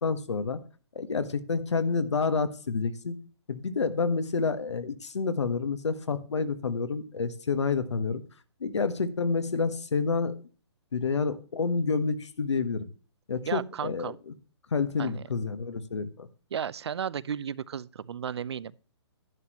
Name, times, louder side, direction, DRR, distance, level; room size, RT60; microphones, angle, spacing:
voice 1, 0.0-0.6 0.9-3.2 3.5-8.2 8.6-10.3 10.9-12.9 13.3-14.3 14.7-16.3, left 4 dB, 90° left, 1.4 m, -29 dB
voice 2, 13.5-14.2 15.0-15.2 16.5-18.8, right 8 dB, 70° right, 0.6 m, -34 dB
11.0 x 9.3 x 3.0 m
hypercardioid pair, 160°, 14 cm